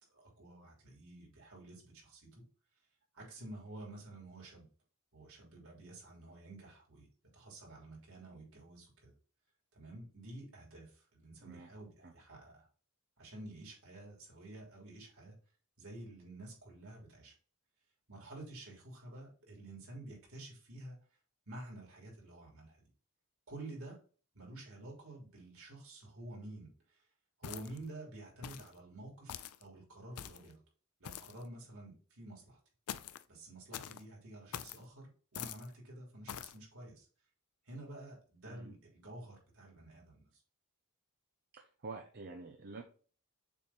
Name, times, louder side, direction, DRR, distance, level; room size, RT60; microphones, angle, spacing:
voice 1, 0.1-2.4 3.1-4.7 5.1-7.1 7.3-9.1 9.7-12.7 13.2-15.3 15.8-17.3 18.1-21.0 21.5-22.9 23.5-24.0 24.3-27.1 27.4-30.6 31.0-32.6 33.3-37.1 37.6-40.4, right 1 dB, 65° right, -1 dB, 3.2 m, -50 dB
sound 1, 27.4-27.9 28.4-28.7 29.3-29.6 30.1-30.5 31.0-31.4 32.9-33.2 33.7-34.0 34.5-34.8 35.3-35.7 36.3-36.6, left 9 dB, 75° left, 0.5 m, -45 dB
voice 2, 41.5-42.8, right 3 dB, 45° right, 3 dB, 0.7 m, -48 dB
7.0 x 3.2 x 4.2 m, 0.39 s
head